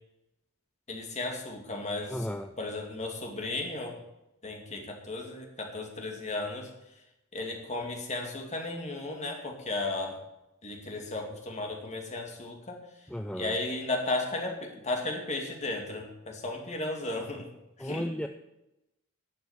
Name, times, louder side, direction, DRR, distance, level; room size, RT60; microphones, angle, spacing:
voice 1, 0.9-2.3 2.6-4.0 4.4-6.7 7.3-10.2 10.6-12.8 13.3-17.5 17.8-18.1, left 2 dB, 30° left, 1 dB, 2.4 m, -34 dB
voice 2, 2.1-2.5 13.1-13.6 17.8-18.3, left 1 dB, 5° left, 6 dB, 0.4 m, -34 dB
11.5 x 6.7 x 8.2 m, 0.92 s
head